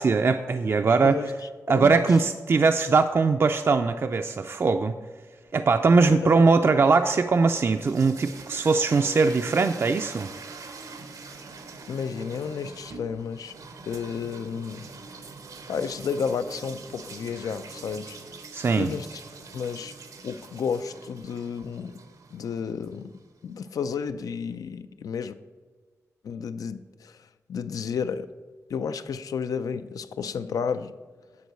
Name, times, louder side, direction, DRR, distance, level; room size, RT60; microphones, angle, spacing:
voice 1, 0.0-1.2 1.7-4.9 5.5-10.3 18.5-18.9, right 4 dB, 45° right, 7 dB, 0.4 m, -21 dB
voice 2, 1.7-2.1 6.1-6.3 11.9-13.5 13.8-14.9 15.7-18.2 18.8-19.2 19.5-19.9 20.2-22.0 22.3-23.1 23.4-25.3 26.2-27.2 27.5-28.3 28.7-30.9, left 6 dB, 90° left, 11 dB, 0.4 m, -32 dB
sound 1, 7.3-23.3, right 4 dB, 85° right, 1.0 m, -44 dB
9.4 x 4.6 x 6.4 m, 1.4 s
wide cardioid pair, 100°, 6 cm